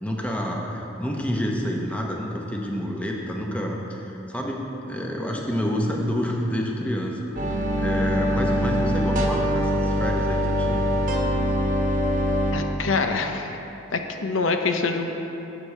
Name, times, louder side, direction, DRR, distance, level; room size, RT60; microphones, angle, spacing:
voice 1, 0.0-10.9, equal, 5° left, -1 dB, 0.7 m, -29 dB
sound 1, 7.3-12.5, equal, 40° right, 1.1 m, -23 dB
voice 2, 12.5-13.6 13.9-15.1, left 4 dB, 85° left, 5 dB, 0.7 m, -25 dB
12.5 x 8.3 x 3.2 m, 3.0 s
head